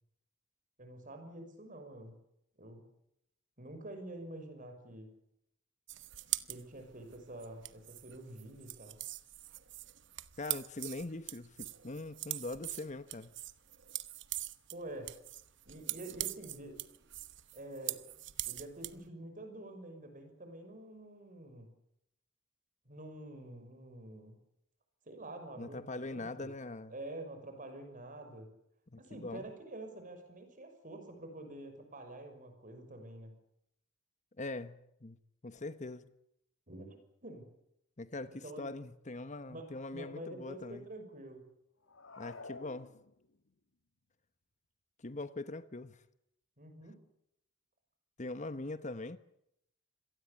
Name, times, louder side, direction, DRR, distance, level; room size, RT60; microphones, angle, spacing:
voice 1, 0.8-2.2 2.6-2.9 3.6-5.1 6.5-9.0 14.7-15.1 15.6-16.8 17.5-18.0 18.5-21.7 22.8-24.4 25.1-26.5 26.9-28.5 29.0-33.3 36.7-37.5 38.3-38.6 39.5-39.6 39.9-41.4 46.6-47.0, right 1 dB, 40° right, 6.2 m, -47 dB
sound 1, 5.9-19.1, right 15 dB, 65° right, 1.0 m, -42 dB
voice 2, 10.4-13.3 25.6-26.9 28.9-29.4 34.4-35.2 35.4-36.1 38.0-40.8 42.2-42.9 45.0-46.0 48.2-49.2, left 2 dB, 35° left, 1.0 m, -42 dB
sound 2, 41.8-43.5, left 3 dB, 75° left, 1.8 m, -50 dB
26.5 x 18.5 x 8.5 m
head